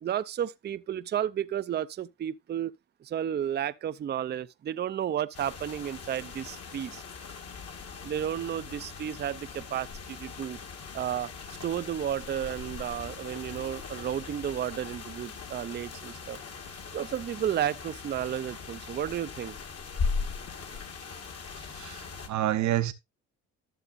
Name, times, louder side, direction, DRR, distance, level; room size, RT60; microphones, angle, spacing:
voice 1, 0.0-2.7 3.0-7.0 8.0-10.6 10.9-11.3 11.6-16.4 16.9-19.6, right 10 dB, 35° right, 0.4 m, -32 dB
sound 1, 5.3-22.3, left 5 dB, 50° left, 1.7 m, -39 dB
voice 2, 21.8-22.9, right 13 dB, 70° right, 0.8 m, -28 dB
12.0 x 7.0 x 2.5 m
cardioid pair, 90°, 30 cm